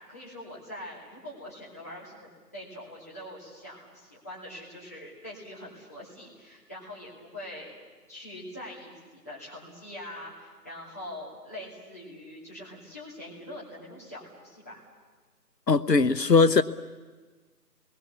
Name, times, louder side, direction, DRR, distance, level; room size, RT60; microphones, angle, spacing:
voice 1, 0.0-7.8 8.1-14.8, left 1 dB, 10° left, -10 dB, 2.7 m, -43 dB
voice 2, 15.7-16.6, left 4 dB, 80° left, 13 dB, 1.0 m, -20 dB
30.0 x 21.5 x 7.3 m, 1.4 s
figure-of-eight pair, 175°, 49 cm